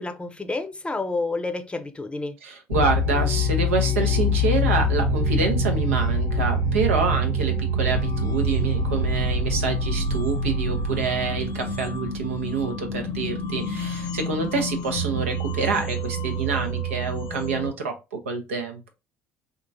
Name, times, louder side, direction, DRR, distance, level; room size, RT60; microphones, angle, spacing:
voice 1, 0.0-2.4, left 3 dB, 15° left, 0.6 m, -29 dB
voice 2, 2.4-18.9, right 4 dB, 85° right, 0.6 m, -27 dB
sound 1, 2.7-17.7, left 1 dB, 70° left, 0.7 m, -25 dB
3.7 x 2.4 x 2.6 m
hypercardioid pair, 60°, 7 cm